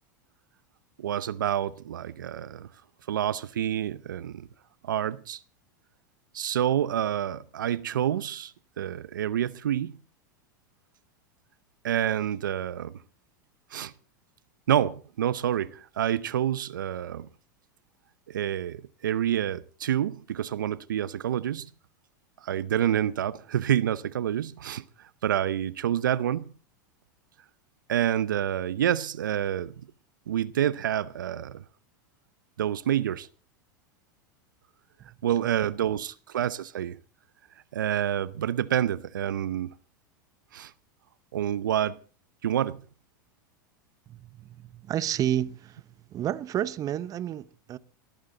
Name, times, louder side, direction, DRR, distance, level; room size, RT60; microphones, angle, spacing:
voice 1, 1.0-2.7 3.1-4.5 4.8-5.4 6.3-10.0 11.8-13.0 13.7-13.9 14.7-17.3 18.3-21.7 22.4-26.5 27.9-29.7 30.3-31.6 32.6-33.3 35.2-37.0 37.7-39.7 40.5-40.7 41.3-42.0 42.4-42.8, right 10 dB, 85° right, 0.7 m, -28 dB
voice 2, 44.1-47.8, right 11 dB, 35° right, 0.9 m, -31 dB
20.5 x 14.5 x 3.9 m
hypercardioid pair, 100°, 10 cm